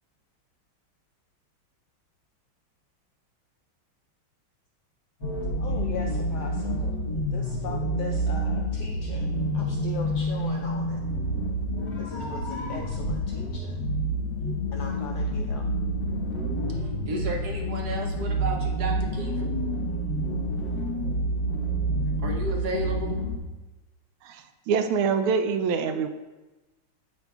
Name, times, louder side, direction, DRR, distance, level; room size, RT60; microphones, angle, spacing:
sound 1, 5.2-23.4, right 1 dB, 40° left, 1.3 m, -28 dB
voice 1, 5.6-6.9 7.3-9.3 9.5-11.0 12.0-13.6 14.7-15.6, left 5 dB, 80° left, 1 dB, 0.9 m, -40 dB
voice 2, 16.8-19.5 22.2-23.2, right 1 dB, 60° right, 1 dB, 1.1 m, -33 dB
voice 3, 24.2-26.1, right 6 dB, 85° right, 8 dB, 1.4 m, -25 dB
8.7 x 5.2 x 2.3 m, 1.1 s
omnidirectional pair, 2.3 m